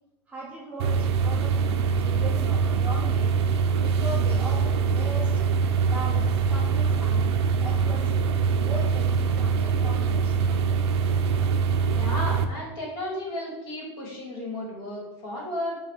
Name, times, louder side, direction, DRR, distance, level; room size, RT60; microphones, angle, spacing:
voice 1, 0.3-3.3 3.8-5.3 5.9-8.2 8.6-10.6, right 2 dB, 10° right, -5 dB, 0.4 m, -39 dB
sound 1, 0.8-12.4, right 5 dB, 70° right, 0.5 m, -23 dB
voice 2, 11.9-15.8, left 1 dB, 30° left, -3 dB, 1.5 m, -33 dB
4.9 x 2.3 x 4.6 m, 1.0 s
supercardioid pair, 175°, 14 cm